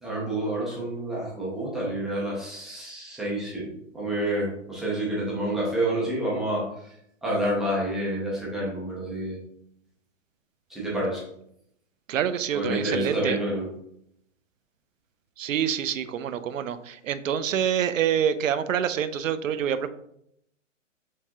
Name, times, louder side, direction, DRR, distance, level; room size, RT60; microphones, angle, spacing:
voice 1, 0.0-6.9 7.2-9.4 10.7-11.2 12.5-13.7, right 1 dB, ahead, -7 dB, 0.5 m, -28 dB
voice 2, 12.1-13.4 15.4-19.9, right 9 dB, 90° right, 13 dB, 0.5 m, -26 dB
4.6 x 3.5 x 2.9 m, 0.75 s
hypercardioid pair, 145°, 38 cm